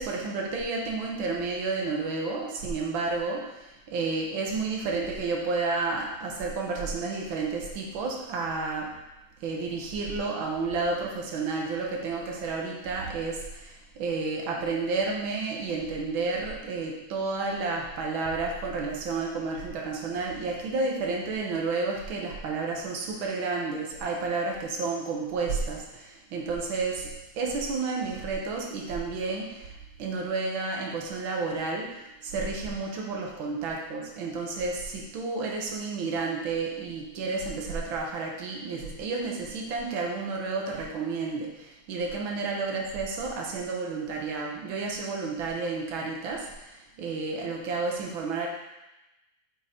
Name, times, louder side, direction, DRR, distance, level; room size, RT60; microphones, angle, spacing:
voice 1, 0.0-8.9 9.4-27.1 27.3-48.5, right 4 dB, 70° right, -1 dB, 1.1 m, -31 dB
8.6 x 3.8 x 4.2 m, 0.99 s
omnidirectional pair, 3.5 m